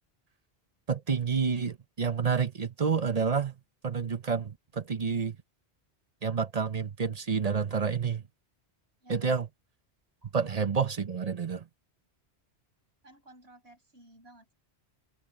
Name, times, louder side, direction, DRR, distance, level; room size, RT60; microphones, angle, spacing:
voice 1, 0.9-3.5 3.8-5.4 6.2-8.2 9.1-9.5 10.3-11.6, right 5 dB, 40° right, 0.8 m, -29 dB
voice 2, 9.0-9.4 10.2-10.3 13.0-14.5, right 1 dB, 70° right, 7.2 m, -56 dB
omnidirectional pair, 1.1 m